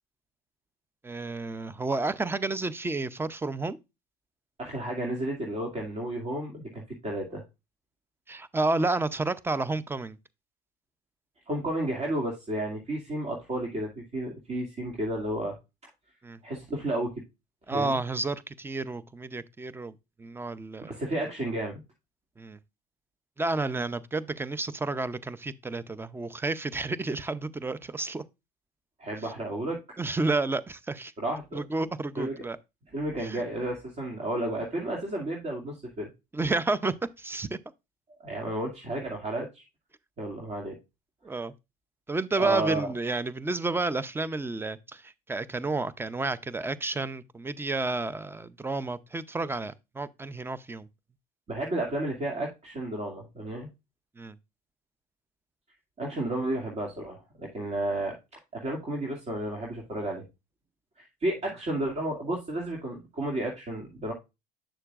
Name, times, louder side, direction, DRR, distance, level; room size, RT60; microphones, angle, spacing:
voice 1, 1.0-3.8 8.3-10.2 16.2-16.4 17.7-21.0 22.4-22.6 23.4-28.2 29.2-29.3 30.0-31.1 31.5-32.6 33.2-33.4 36.3-37.6 41.2-41.5 42.1-50.9 54.2-54.4, right 3 dB, 10° right, 0.6 m, -31 dB
voice 2, 4.6-7.4 11.5-15.6 16.4-17.1 17.7-18.0 20.8-21.8 29.0-29.8 31.2-31.6 32.2-32.3 32.9-36.1 38.2-39.6 40.2-40.8 42.4-42.9 51.5-53.7 56.0-58.1 58.5-60.2 61.0-64.1, right 1 dB, 35° right, 2.3 m, -32 dB
8.9 x 6.7 x 2.5 m
supercardioid pair, 90°, 20 cm